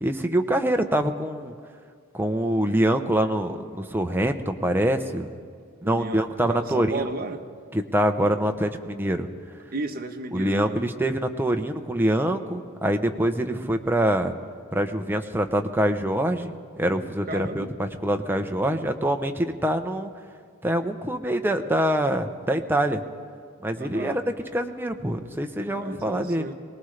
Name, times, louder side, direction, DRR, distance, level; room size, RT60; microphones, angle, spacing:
voice 1, 0.0-1.5 2.1-5.3 5.8-7.0 7.7-9.3 10.3-14.3 14.7-20.1 20.6-23.0 23.6-24.2 24.5-26.5, right 1 dB, 10° right, 5 dB, 0.6 m, -25 dB
voice 2, 5.8-7.4 9.7-10.8 17.3-17.7 23.7-24.2 25.7-26.5, right 2 dB, 45° right, 5 dB, 0.9 m, -34 dB
23.0 x 19.0 x 3.3 m, 2.1 s
head